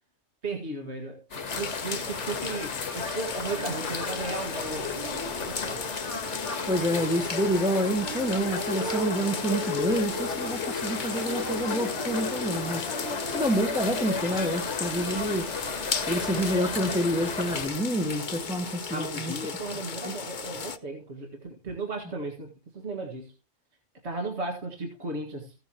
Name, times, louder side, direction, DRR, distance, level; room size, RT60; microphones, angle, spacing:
voice 1, 0.4-1.2 1.5-5.0 5.4-5.9 18.9-23.3 24.0-25.5, right 2 dB, 60° right, 2.2 m, -35 dB
sound 1, 1.3-17.7, left 4 dB, 70° left, 1.8 m, -34 dB
sound 2, 1.5-20.8, left 5 dB, 45° left, 0.9 m, -36 dB
sound 3, 3.5-19.4, left 1 dB, 40° right, 2.3 m, -39 dB
voice 2, 6.7-12.9 13.3-15.5 16.1-19.3 20.0-20.1, right 1 dB, 5° right, 1.0 m, -28 dB
15.5 x 9.2 x 3.0 m
omnidirectional pair, 1.3 m